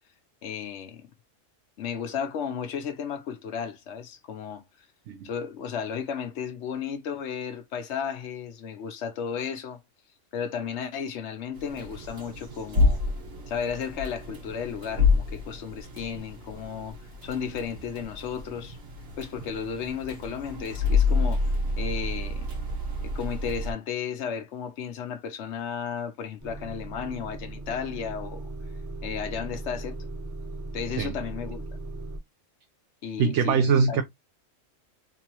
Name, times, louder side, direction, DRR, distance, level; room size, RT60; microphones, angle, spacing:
voice 1, 0.4-1.1 1.8-4.6 5.2-9.8 10.3-13.0 13.5-18.8 19.2-21.4 21.8-22.5 23.0-28.4 29.0-30.1 30.7-31.7 33.0-33.6 33.9-34.0, left 7 dB, 65° left, 1.0 m, -34 dB
sound 1, 11.5-23.7, left 3 dB, 90° right, 1.8 m, -29 dB
Motor vehicle (road) / Engine starting / Idling, 26.4-32.2, right 2 dB, 15° right, 0.7 m, -38 dB
voice 2, 33.2-34.0, right 5 dB, 70° right, 0.9 m, -22 dB
3.7 x 2.9 x 2.9 m
omnidirectional pair, 1.3 m